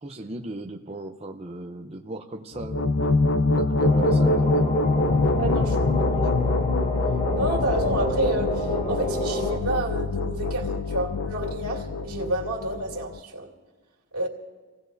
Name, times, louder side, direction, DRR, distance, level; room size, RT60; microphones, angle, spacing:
voice 1, 0.0-2.9 3.5-4.7, right 1 dB, 30° right, 3 dB, 0.6 m, -37 dB
sound 1, 2.5-13.2, left 3 dB, 55° left, 0.5 m, -24 dB
sound 2, 3.8-9.6, equal, 35° left, 1.7 m, -29 dB
voice 2, 5.4-6.5 7.3-13.5 14.1-14.3, right 2 dB, 90° right, -1 dB, 2.5 m, -30 dB
27.5 x 17.5 x 2.7 m, 1.4 s
head